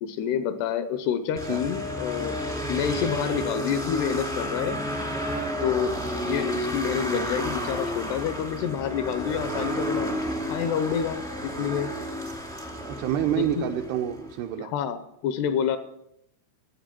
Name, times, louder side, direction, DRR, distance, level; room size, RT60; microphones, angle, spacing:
voice 1, 0.0-2.4 2.7-4.8 5.6-10.1 10.5-11.9 13.4-13.7 14.6-15.8, left 8 dB, 80° left, 10 dB, 2.6 m, -28 dB
sound 1, 1.4-14.4, equal, 5° left, 0.6 m, -31 dB
voice 2, 12.9-14.7, right 10 dB, 80° right, 3 dB, 2.6 m, -28 dB
12.5 x 8.7 x 7.5 m, 0.80 s
omnidirectional pair, 5.1 m